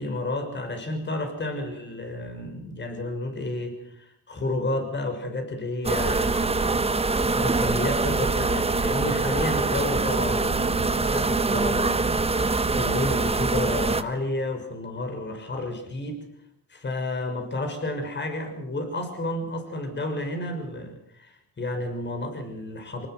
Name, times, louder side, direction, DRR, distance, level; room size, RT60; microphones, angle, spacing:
voice 1, 0.0-6.8 7.3-12.2 12.7-16.2 16.7-23.1, left 2 dB, 35° left, 6 dB, 6.1 m, -31 dB
sound 1, 5.8-14.0, right 3 dB, 20° right, 1.3 m, -24 dB
25.0 x 19.5 x 6.4 m, 0.74 s
cardioid pair, 90°, 30 cm